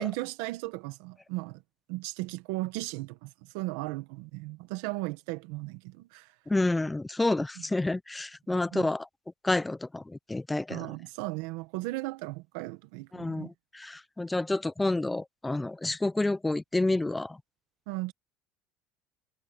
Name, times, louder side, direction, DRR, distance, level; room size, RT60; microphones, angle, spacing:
voice 1, 0.0-1.6 1.9-6.3 7.6-7.7 8.7-8.9 10.7-13.5 17.9-18.1, right 21 dB, 85° right, 1.5 m, -36 dB
voice 2, 6.5-9.1 9.4-10.8 13.1-17.4, left 2 dB, 10° left, 0.6 m, -29 dB
cardioid pair, 140°, 0 cm